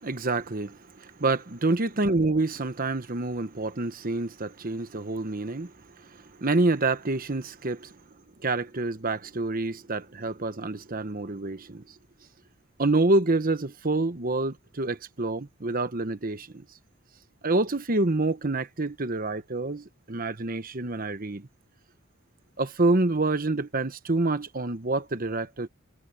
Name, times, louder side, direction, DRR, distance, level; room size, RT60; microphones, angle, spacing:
voice 1, 0.0-5.7 6.1-8.0 8.4-11.8 12.8-16.6 17.4-21.5 22.6-25.7, right 2 dB, 40° right, 1.1 m, -27 dB
head